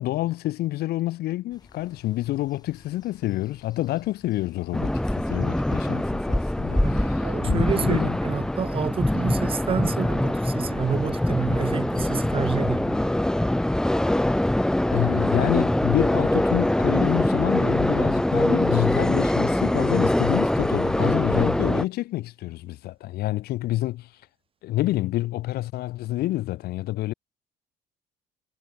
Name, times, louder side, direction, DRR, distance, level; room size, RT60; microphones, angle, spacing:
voice 1, 0.0-8.2 14.9-24.1 24.6-27.1, left 16 dB, 70° left, 0.6 m, -28 dB
sound 1, 1.5-17.2, left 4 dB, 25° left, 2.5 m, -55 dB
sound 2, 4.7-21.9, left 1 dB, 5° left, 0.5 m, -23 dB
voice 2, 6.8-13.1, right 7 dB, 35° right, 0.8 m, -29 dB
cardioid pair, 110°, 17 cm